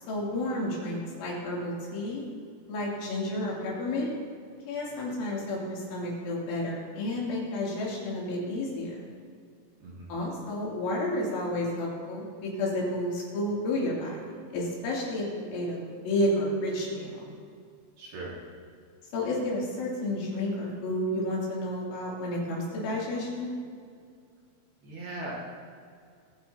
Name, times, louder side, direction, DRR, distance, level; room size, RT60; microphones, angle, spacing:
voice 1, 0.1-2.2 2.7-4.1 4.7-9.1 10.1-17.3 19.1-23.5, left 1 dB, 85° left, -5 dB, 5.2 m, -31 dB
voice 2, 9.8-10.1 18.0-18.3 24.8-25.3, right 2 dB, 60° right, -5 dB, 3.6 m, -39 dB
23.5 x 9.5 x 2.8 m, 2.2 s
omnidirectional pair, 5.4 m